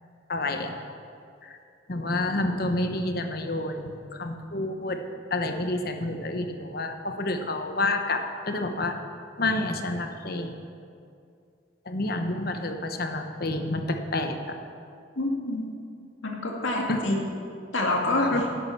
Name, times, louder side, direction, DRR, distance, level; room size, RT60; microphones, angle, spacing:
voice 1, 0.3-0.8 1.4-1.6 1.9-5.0 5.3-9.0 9.4-10.5 11.9-14.5 16.9-17.0 18.3-18.4, left 2 dB, 50° left, 6 dB, 1.0 m, -29 dB
voice 2, 15.2-15.6 16.2-17.2 17.7-18.4, left 2 dB, 85° left, 0 dB, 2.2 m, -26 dB
11.5 x 8.8 x 7.1 m, 2.4 s
head